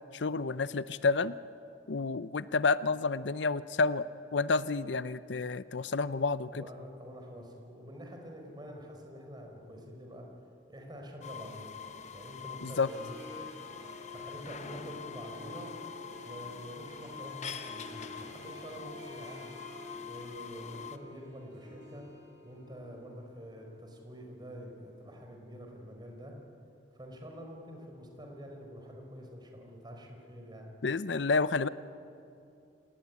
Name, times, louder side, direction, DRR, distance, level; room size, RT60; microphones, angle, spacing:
voice 1, 0.1-1.3 1.9-4.0 4.3-6.6 12.6-12.9 30.8-31.7, left 4 dB, 80° left, 15 dB, 0.7 m, -29 dB
voice 2, 6.5-10.3 10.7-11.7 12.1-13.5 14.1-15.7 16.2-19.5 20.0-22.1 22.4-26.3 27.0-30.7, equal, 25° right, 2 dB, 4.7 m, -47 dB
sound 1, 11.2-21.0, left 7 dB, 40° left, 1.0 m, -45 dB
Harp, 12.8-24.6, left 1 dB, 80° right, 5.9 m, -50 dB
27.0 x 19.0 x 9.6 m, 2.6 s
head